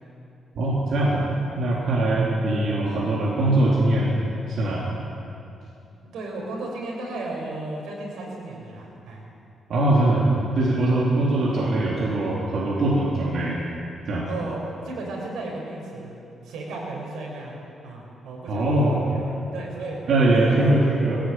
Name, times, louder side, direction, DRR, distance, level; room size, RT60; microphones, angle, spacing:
voice 1, 0.6-1.3 1.6-4.2 4.5-4.8 9.7-13.6 14.1-14.3 18.5-19.1 20.1-21.2, right 2 dB, 60° right, -5 dB, 3.8 m, -21 dB
voice 2, 6.0-9.2 10.9-11.0 14.3-16.1 16.4-17.5 17.8-20.0 20.4-21.0, right 2 dB, 85° right, -1 dB, 6.7 m, -35 dB
21.0 x 17.5 x 9.5 m, 2.7 s
cardioid pair, 155°, 0 cm